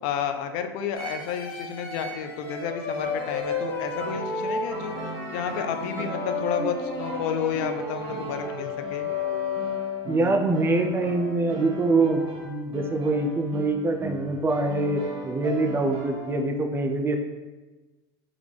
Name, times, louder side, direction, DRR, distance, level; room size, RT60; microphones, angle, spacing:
voice 1, 0.0-5.0 5.3-9.1, left 7 dB, 60° left, 7 dB, 0.4 m, -31 dB
sound 1, 0.9-10.3, left 4 dB, 45° left, 1.4 m, -32 dB
sound 2, 3.0-16.4, right 2 dB, 45° right, 0.8 m, -38 dB
voice 2, 10.1-17.2, right 2 dB, 20° right, 4 dB, 0.3 m, -24 dB
3.4 x 2.4 x 3.1 m, 1.2 s
hypercardioid pair, 90°, 13 cm